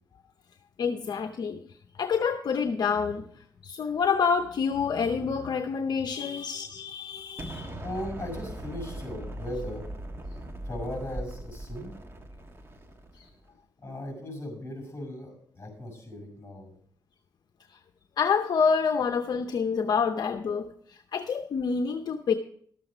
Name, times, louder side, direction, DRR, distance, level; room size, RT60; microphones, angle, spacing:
voice 1, 0.8-1.6 2.0-3.3 3.6-7.8 13.2-13.3 17.7-17.8 18.2-22.3, left 6 dB, 60° left, 6 dB, 0.7 m, -27 dB
Explosion, 7.4-13.4, right 1 dB, 30° right, 1.5 m, -40 dB
voice 2, 7.8-9.9 10.6-11.9 13.8-16.7, left 1 dB, 25° left, 4 dB, 5.9 m, -37 dB
12.5 x 7.7 x 4.9 m, 0.63 s
cardioid pair, 85°, 8 cm